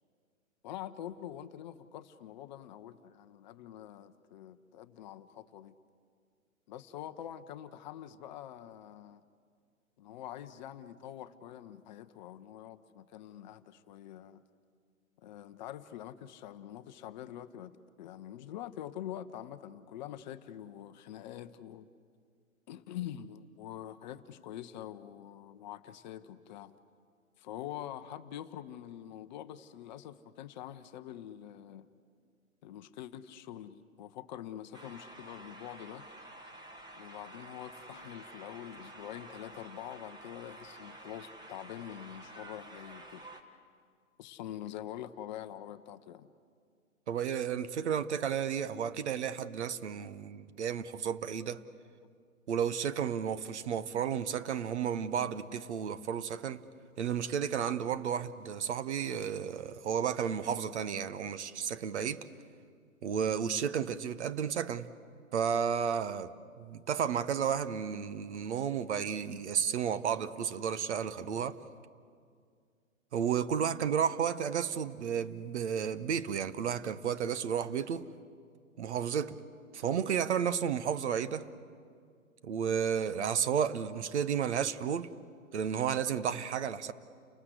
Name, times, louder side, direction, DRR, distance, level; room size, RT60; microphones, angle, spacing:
voice 1, 0.6-5.8 6.7-9.2 10.0-14.4 15.2-21.9 22.7-26.7 27.4-31.9 32.6-36.1 36.9-43.2 44.2-46.3 49.0-49.1, left 11 dB, 35° left, 0.8 m, -45 dB
sound 1, 34.7-43.4, right 1 dB, 10° right, 1.5 m, -50 dB
voice 2, 47.1-51.6 52.5-56.6 57.0-62.2 63.0-64.9 65.3-66.3 66.6-71.6 73.1-78.1 78.8-79.4 79.7-81.5 82.4-85.1 85.5-86.9, right 8 dB, 55° right, 1.1 m, -32 dB
30.0 x 20.0 x 8.1 m
figure-of-eight pair, 125°, 41 cm